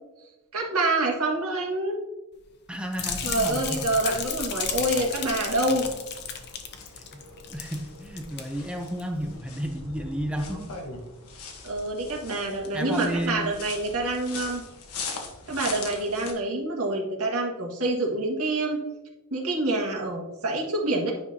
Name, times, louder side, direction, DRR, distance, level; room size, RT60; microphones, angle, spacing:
voice 1, 0.5-2.0 3.2-5.9 11.6-14.6 15.5-18.8 19.3-21.1, right 2 dB, 85° right, -1 dB, 1.8 m, -27 dB
voice 2, 2.7-3.8 6.9-7.2 7.5-10.7 12.7-13.5, equal, 5° right, 3 dB, 0.6 m, -32 dB
sound 1, 2.9-7.8 8.0-8.4 8.9-9.0, left 6 dB, 50° left, 0.8 m, -33 dB
sound 2, 3.3-16.3, left 4 dB, 90° left, 1.2 m, -42 dB
9.8 x 5.4 x 2.8 m, 0.98 s
head